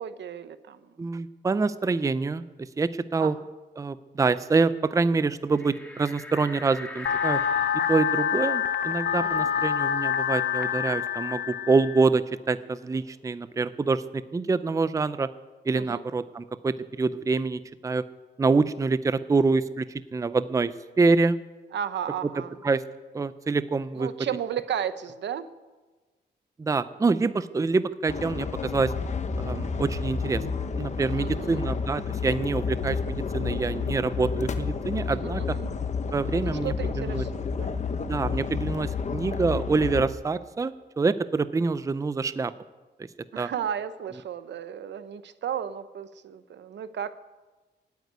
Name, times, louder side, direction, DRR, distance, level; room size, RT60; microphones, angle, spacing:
voice 1, 0.0-0.8 3.2-3.3 9.2-9.5 15.8-16.0 21.7-22.6 24.0-25.5 31.2-31.6 35.1-35.7 36.4-37.8 38.1-38.5 43.3-47.1, right 9 dB, 80° right, 13 dB, 0.9 m, -34 dB
voice 2, 1.0-3.4 3.8-7.4 7.9-15.3 15.7-18.0 18.4-20.7 21.0-21.4 22.6-22.8 23.1-24.1 26.6-28.9 29.4-30.4 30.8-35.4 36.1-37.2 38.1-42.5 43.0-43.1 43.4-43.5, right 4 dB, 20° right, 14 dB, 0.5 m, -26 dB
sound 1, 5.5-10.7 11.0-11.1 11.5-13.1, left 1 dB, 10° left, 2.1 m, -44 dB
sound 2, 7.1-12.1, left 8 dB, 70° left, 0.8 m, -26 dB
sound 3, 28.1-40.1, left 5 dB, 40° left, 1.0 m, -30 dB
16.0 x 9.4 x 9.4 m, 1.3 s
wide cardioid pair, 150°, 18 cm